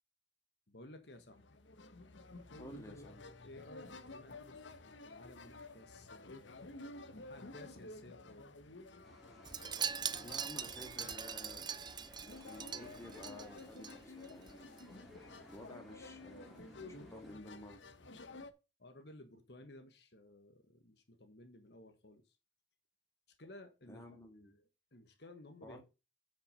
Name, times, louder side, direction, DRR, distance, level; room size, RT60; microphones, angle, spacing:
voice 1, 0.7-1.6 3.4-6.9 7.2-8.6 18.8-22.4 23.4-25.8, left 1 dB, 60° left, 1.4 m, -56 dB
sound 1, 1.1-18.5, left 2 dB, 85° left, 1.1 m, -53 dB
voice 2, 2.6-3.4 10.1-11.7 12.2-14.7 15.5-17.8 23.9-24.6 25.6-25.8, left 1 dB, 15° left, 2.1 m, -53 dB
sound 2, 9.0-17.3, equal, ahead, 2.3 m, -59 dB
Wind chime, 9.4-13.9 14.2-14.5 14.8-14.9, right 7 dB, 25° right, 0.5 m, -41 dB
8.5 x 5.9 x 5.4 m
head